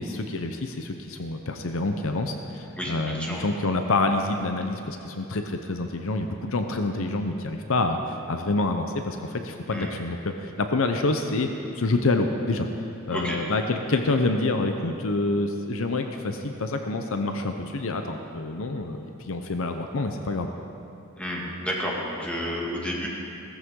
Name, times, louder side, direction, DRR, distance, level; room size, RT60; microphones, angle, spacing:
voice 1, 0.0-8.0 8.3-11.5 11.8-12.7 13.1-20.5, left 2 dB, 65° left, 5 dB, 0.7 m, -27 dB
voice 2, 2.8-3.5 9.7-9.9 13.1-13.4 21.2-23.1, equal, 5° left, -4 dB, 2.1 m, -31 dB
16.5 x 14.0 x 3.8 m, 2.8 s
head